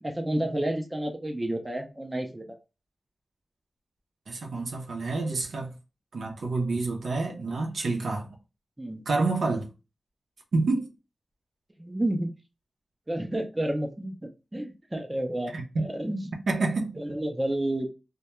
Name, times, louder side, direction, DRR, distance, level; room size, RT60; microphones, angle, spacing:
voice 1, 0.0-2.5 8.8-9.1 11.8-12.3 13.1-16.3 17.0-17.9, right 1 dB, 15° right, 0.4 m, -30 dB
voice 2, 4.3-5.8 6.1-8.4 9.1-9.7 10.5-10.9 15.5-15.9 16.5-17.0, right 3 dB, 75° right, 0.6 m, -28 dB
2.2 x 2.1 x 2.9 m
wide cardioid pair, 120°, 0 cm